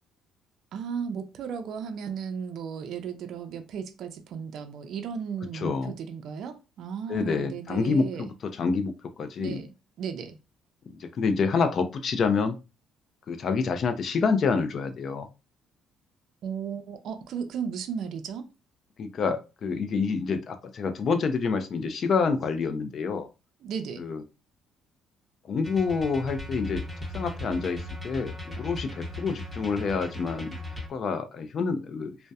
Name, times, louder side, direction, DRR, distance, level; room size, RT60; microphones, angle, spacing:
voice 1, 0.7-8.3 9.4-9.7 10.0-10.4 16.4-18.5 23.6-24.0, right 7 dB, 65° right, 0.4 m, -35 dB
voice 2, 5.5-5.9 7.1-9.6 11.0-12.6 13.3-15.3 19.0-23.3 24.0-24.2 25.5-26.8 27.1-30.6 30.9-32.2, left 5 dB, 45° left, 0.4 m, -27 dB
sound 1, 25.6-30.9, left 1 dB, 5° right, 0.9 m, -38 dB
2.7 x 2.0 x 2.2 m
cardioid pair, 120°, 0 cm